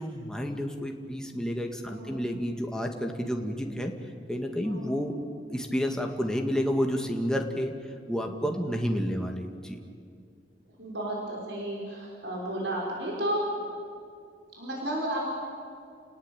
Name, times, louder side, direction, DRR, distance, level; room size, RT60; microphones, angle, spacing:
voice 1, 0.0-3.9 4.3-5.2 5.5-7.7 8.1-9.8, equal, 5° left, 2 dB, 1.9 m, -30 dB
voice 2, 8.1-8.5 10.8-13.5 14.5-15.2, right 1 dB, 80° right, -3 dB, 6.2 m, -33 dB
30.0 x 19.0 x 9.1 m, 2.3 s
head